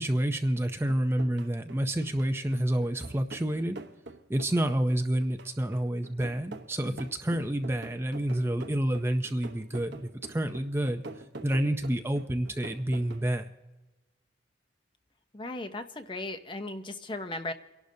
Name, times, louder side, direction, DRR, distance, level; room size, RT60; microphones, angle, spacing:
voice 1, 0.0-3.8 4.3-11.0 11.4-13.4, right 1 dB, 15° right, 6 dB, 0.5 m, -29 dB
sound 1, 0.7-13.3, right 2 dB, 65° right, 1.0 m, -46 dB
voice 2, 15.3-17.5, left 2 dB, 25° left, 8 dB, 0.7 m, -37 dB
29.5 x 11.5 x 2.7 m, 1.1 s
head